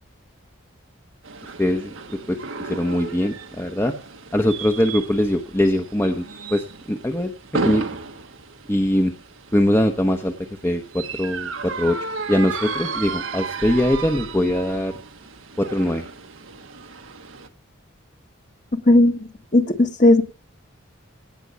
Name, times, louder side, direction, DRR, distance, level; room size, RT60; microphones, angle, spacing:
sound 1, 1.2-17.5, right 4 dB, 85° right, 1.4 m, -34 dB
voice 1, 1.6-3.9 4.3-6.2 6.5-7.3 7.6-7.8 8.7-9.1 9.5-10.3 10.6-14.9 15.6-16.1, left 1 dB, 10° left, 5 dB, 0.9 m, -22 dB
voice 2, 18.7-19.2 19.5-20.2, left 1 dB, 35° left, 6 dB, 1.5 m, -15 dB
18.0 x 7.7 x 6.8 m, 0.41 s
head